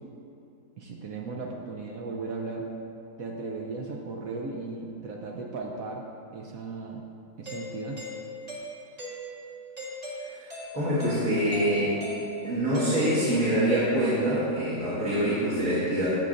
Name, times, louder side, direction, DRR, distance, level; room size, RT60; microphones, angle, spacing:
voice 1, 0.8-2.7 3.2-6.0 6.3-7.0 7.4-8.0, right 3 dB, 65° right, 0 dB, 0.9 m, -36 dB
Doorbell, 7.5-13.8, left 1 dB, 25° right, 1.6 m, -40 dB
voice 2, 10.7-12.0 12.4-16.1, right 1 dB, 50° right, -12 dB, 2.0 m, -25 dB
16.5 x 5.6 x 2.6 m, 2.7 s
omnidirectional pair, 1.9 m